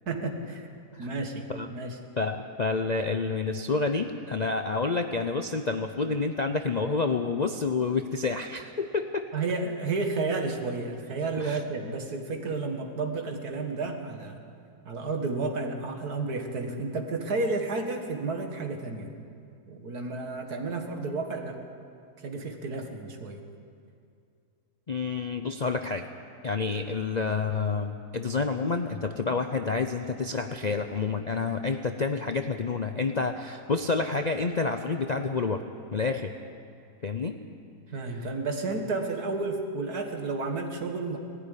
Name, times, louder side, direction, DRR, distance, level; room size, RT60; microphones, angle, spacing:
voice 1, 0.1-0.7 1.0-1.4 1.7-2.0 9.3-14.4 14.9-19.2 19.7-21.6 22.2-23.4 37.9-41.2, right 3 dB, 75° right, 4 dB, 2.3 m, -31 dB
voice 2, 2.2-9.3 11.4-11.6 24.9-26.1 26.4-35.6 35.9-36.3 37.0-37.4 38.1-38.3, left 4 dB, 45° left, 6 dB, 0.5 m, -29 dB
19.5 x 14.5 x 10.0 m, 2.4 s
omnidirectional pair, 1.7 m